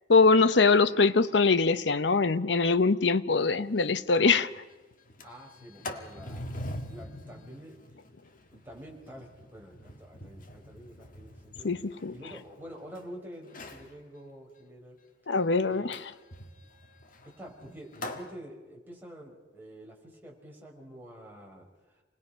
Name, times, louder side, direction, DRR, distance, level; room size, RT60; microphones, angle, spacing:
voice 1, 0.1-4.5 11.6-12.1 15.3-16.0, left 4 dB, 70° left, 13 dB, 0.8 m, -23 dB
Sliding door, 3.5-3.6 3.9-4.0 4.3-4.6 5.0-13.0 13.4-13.9 15.9-18.3, left 1 dB, 50° left, 1.8 m, -44 dB
voice 2, 5.2-6.6 6.9-7.8 8.5-11.7 12.1-15.0 15.7-16.0 17.2-22.0, equal, 10° right, -2 dB, 4.7 m, -47 dB
29.0 x 20.0 x 5.7 m, 1.2 s
head